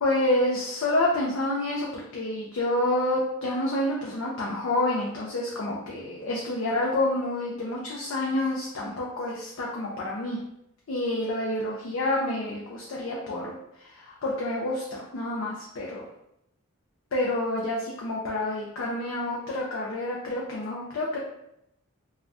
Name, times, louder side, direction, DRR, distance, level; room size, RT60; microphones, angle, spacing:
voice 1, 0.0-10.4 10.9-16.1 17.1-21.2, left 1 dB, 65° left, -3 dB, 0.4 m, -28 dB
2.5 x 2.1 x 3.4 m, 0.80 s
head